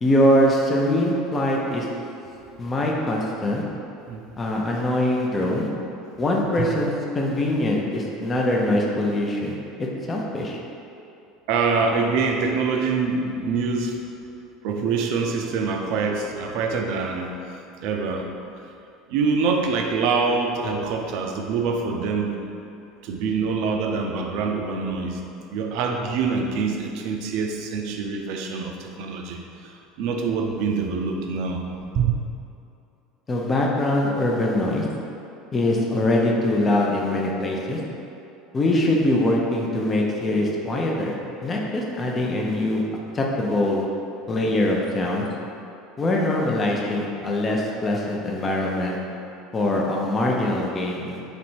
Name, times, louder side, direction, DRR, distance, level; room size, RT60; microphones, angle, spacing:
voice 1, 0.0-1.9 2.6-3.6 4.4-5.7 6.2-10.6 33.3-34.9 35.5-37.8 38.5-41.1 41.4-42.8 43.1-43.8 44.3-45.3 46.0-49.0 49.5-51.2, left 1 dB, 30° left, -2 dB, 0.6 m, -23 dB
voice 2, 11.5-14.0 14.6-17.3 17.8-18.3 19.1-22.4 23.0-25.2 25.5-29.4 30.0-31.6 31.9-32.2, right 4 dB, 60° right, 3 dB, 0.4 m, -25 dB
3.2 x 2.6 x 4.4 m, 2.7 s
hypercardioid pair, 70°, 0 cm